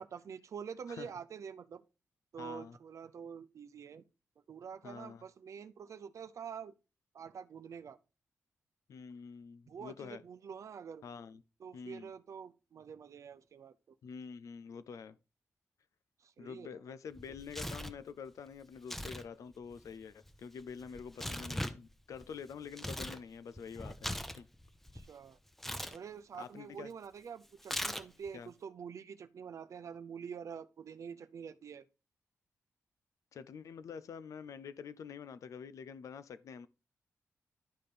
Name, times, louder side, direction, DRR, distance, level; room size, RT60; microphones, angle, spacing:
voice 1, 0.0-1.8 2.3-4.0 4.5-6.7 7.1-8.0 9.7-11.0 11.6-14.0 16.2-16.8 24.9-25.4 25.9-31.8, right 7 dB, 70° right, 0.6 m, -46 dB
voice 2, 2.4-2.8 4.8-5.2 8.9-10.2 11.0-11.4 11.7-12.1 14.0-15.2 16.4-24.5 26.4-26.9 28.3-28.5 33.3-36.7, left 6 dB, 85° left, 0.5 m, -47 dB
Tearing, 17.1-18.0 18.8-19.2 19.5-23.2 23.5-25.0 25.6-26.0 27.6-28.3, equal, 5° left, 0.7 m, -40 dB
11.5 x 4.3 x 5.1 m
wide cardioid pair, 105°, 5 cm